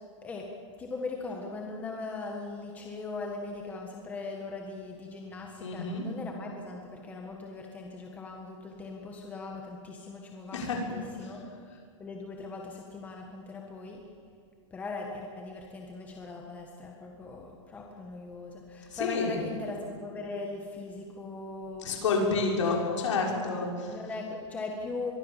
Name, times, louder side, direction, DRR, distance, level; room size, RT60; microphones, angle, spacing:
voice 1, 0.8-11.4 12.0-14.0 14.7-22.1 22.4-22.8 23.9-25.1, left 3 dB, 10° left, 1 dB, 1.6 m, -39 dB
voice 2, 5.6-6.0 10.5-10.8 11.2-11.3 18.9-19.4 21.8-24.0, left 4 dB, 75° left, 0 dB, 6.4 m, -29 dB
25.0 x 22.5 x 7.5 m, 2.3 s
supercardioid pair, 170°, 16 cm